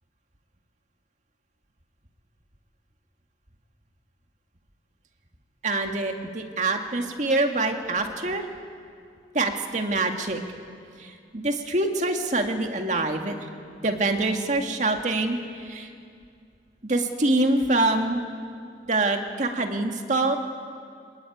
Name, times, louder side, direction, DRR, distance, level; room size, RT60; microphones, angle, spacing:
voice 1, 5.6-8.4 9.3-10.4 11.3-13.3 13.8-15.4 15.7-15.9 16.9-18.2 18.9-20.4, right 2 dB, 40° right, 4 dB, 2.0 m, -25 dB
25.5 x 20.5 x 9.3 m, 2.3 s
head